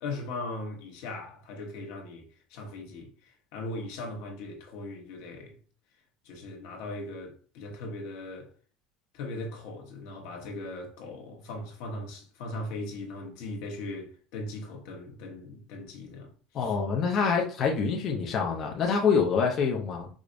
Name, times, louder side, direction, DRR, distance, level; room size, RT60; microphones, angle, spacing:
voice 1, 0.0-5.6 6.2-8.5 9.1-16.8, left 2 dB, 75° left, 0.9 m, -39 dB
voice 2, 16.5-20.1, left 5 dB, 40° left, 0.5 m, -26 dB
4.8 x 2.1 x 2.5 m
cardioid pair, 155°, 0 cm